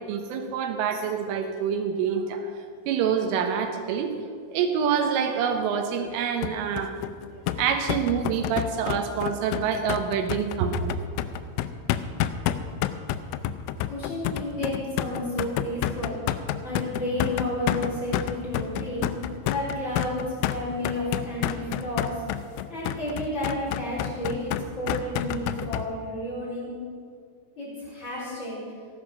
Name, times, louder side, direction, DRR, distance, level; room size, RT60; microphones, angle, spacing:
voice 1, 0.0-4.1 4.5-6.9 7.6-11.0, right 7 dB, 85° right, 6 dB, 3.7 m, -26 dB
sound 1, 6.4-25.8, left 12 dB, 85° left, 3.1 m, -29 dB
voice 2, 13.9-16.2 16.6-19.1 19.5-22.2 22.7-26.7 27.6-28.6, left 1 dB, 25° left, -7 dB, 4.3 m, -31 dB
15.0 x 11.0 x 6.1 m, 2.1 s
omnidirectional pair, 5.6 m